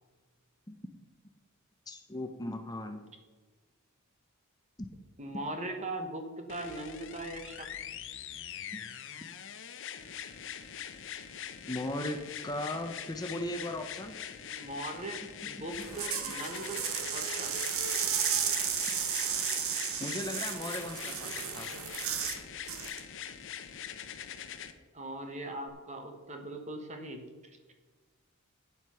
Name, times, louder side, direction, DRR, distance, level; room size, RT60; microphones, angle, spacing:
voice 1, 1.9-3.0 11.7-14.2 20.0-21.9, left 1 dB, 15° left, 5 dB, 0.6 m, -37 dB
voice 2, 5.2-7.7 14.5-16.8 17.1-17.5 24.9-27.2, right 1 dB, 30° right, 5 dB, 1.2 m, -40 dB
sound 1, 6.5-24.7 25.7-25.8, left 9 dB, 55° left, 0.8 m, -43 dB
sound 2, 15.7-22.4 22.7-23.0, right 8 dB, 65° right, 1.1 m, -33 dB
9.3 x 7.8 x 5.7 m, 1.3 s
head